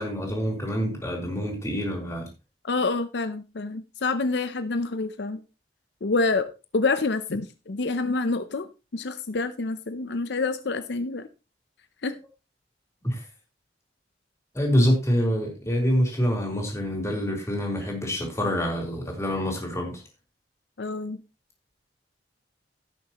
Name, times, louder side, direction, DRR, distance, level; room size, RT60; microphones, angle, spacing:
voice 1, 0.0-2.3 13.0-13.2 14.5-20.0, equal, 15° left, 3.6 m, -26 dB
voice 2, 2.6-5.4 6.0-6.5 6.7-11.3 12.0-12.2 20.8-21.2, left 3 dB, 70° left, 0.6 m, -27 dB
17.0 x 6.8 x 3.0 m
head